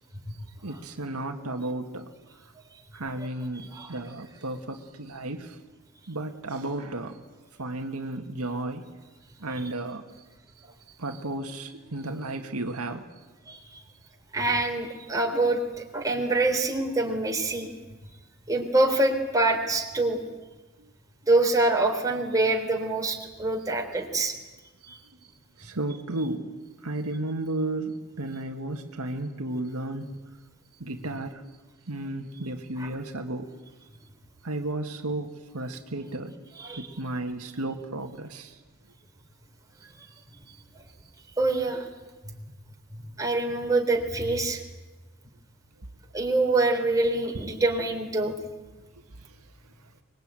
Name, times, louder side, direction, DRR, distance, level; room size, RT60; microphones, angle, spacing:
voice 1, 0.6-2.1 2.9-5.6 6.1-7.2 7.6-8.9 9.4-10.0 11.0-13.0 20.8-20.9 25.6-26.5 26.8-30.1 30.8-31.4 31.9-33.5 34.4-36.4 36.7-38.6, right 2 dB, 80° right, 4 dB, 1.9 m, -33 dB
voice 2, 3.6-3.9 13.5-13.8 14.3-17.7 18.5-20.2 21.3-24.3 24.9-25.0 32.8-32.9 36.6-36.9 41.4-41.8 43.2-44.6 46.1-48.4, right 2 dB, 15° right, 1 dB, 3.6 m, -25 dB
24.5 x 22.0 x 9.1 m, 1.2 s
head